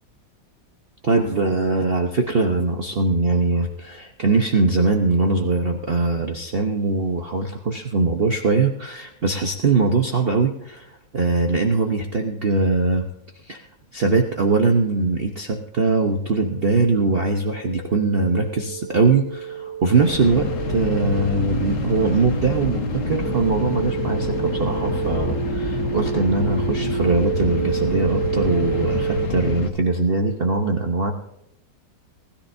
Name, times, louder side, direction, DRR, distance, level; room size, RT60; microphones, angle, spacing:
voice 1, 1.0-13.1 13.4-13.7 13.9-31.1, right 3 dB, 40° right, 3 dB, 1.0 m, -21 dB
sound 1, 16.1-29.3, right 8 dB, 85° right, 1.9 m, -30 dB
sound 2, 19.9-29.7, left 5 dB, 50° left, 1.3 m, -27 dB
20.0 x 13.0 x 2.7 m, 0.79 s
omnidirectional pair, 1.8 m